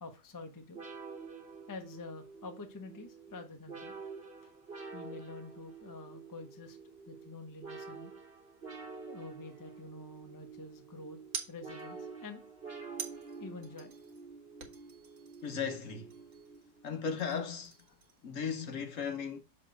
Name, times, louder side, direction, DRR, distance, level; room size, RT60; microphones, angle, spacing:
voice 1, 0.0-0.8 1.3-1.4 1.7-4.0 4.4-4.5 4.9-8.1 9.1-11.2 11.5-12.4 13.4-13.9, left 3 dB, 20° left, 0.6 m, -47 dB
sound 1, 0.7-17.0, right 4 dB, 40° right, 1.6 m, -48 dB
sound 2, 9.4-10.2 11.3-12.1 13.0-14.3 14.6-15.8 16.1-16.7 17.1-18.3, right 6 dB, 55° right, 1.5 m, -47 dB
voice 2, 15.4-16.1 16.8-17.8 18.2-19.4, left 6 dB, 60° left, 1.0 m, -36 dB
6.5 x 3.2 x 5.0 m
omnidirectional pair, 1.7 m